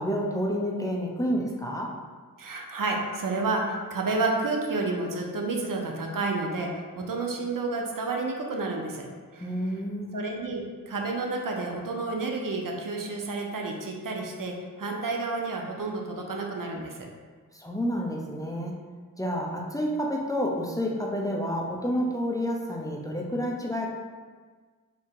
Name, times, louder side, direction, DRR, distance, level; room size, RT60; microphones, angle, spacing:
voice 1, 0.0-1.9 9.4-10.2 17.5-18.7 19.2-23.9, equal, 10° left, -2 dB, 0.6 m, -29 dB
voice 2, 2.4-9.1 9.3-9.5 10.1-17.1, right 3 dB, 65° right, 1 dB, 0.7 m, -30 dB
3.6 x 2.8 x 4.5 m, 1.5 s
wide cardioid pair, 65°, 35 cm